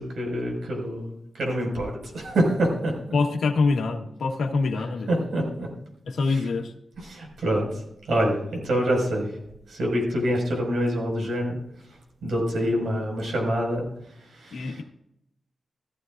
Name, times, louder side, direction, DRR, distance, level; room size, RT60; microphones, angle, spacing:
voice 1, 0.0-2.9 5.1-5.7 6.3-6.4 7.0-7.8 8.1-9.3 9.7-11.6 12.2-13.9 14.3-14.8, equal, 85° right, 0 dB, 5.7 m, -26 dB
voice 2, 3.1-5.1 6.1-6.7 14.5-14.8, left 4 dB, 90° left, 4 dB, 1.4 m, -25 dB
15.0 x 14.5 x 2.6 m, 0.78 s
wide cardioid pair, 130°, 0 cm